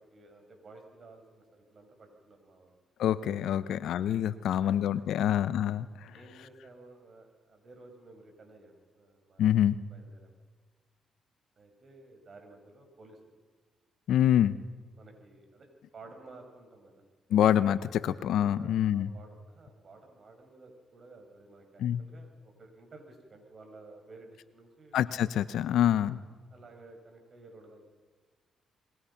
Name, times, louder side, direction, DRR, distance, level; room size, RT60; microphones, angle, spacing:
voice 1, 0.0-2.8 3.6-3.8 4.5-4.8 5.2-5.4 6.1-9.5 9.9-10.4 11.6-13.3 15.0-17.0 18.0-18.2 18.6-25.0 25.7-25.9 26.5-27.9, right 3 dB, 50° right, 4 dB, 6.8 m, -54 dB
voice 2, 3.0-6.1 9.4-9.8 14.1-14.6 17.3-19.1 21.8-22.0 24.9-26.2, left 10 dB, 75° left, 15 dB, 0.8 m, -26 dB
28.0 x 22.5 x 5.9 m, 1.4 s
supercardioid pair, 60°, 0 cm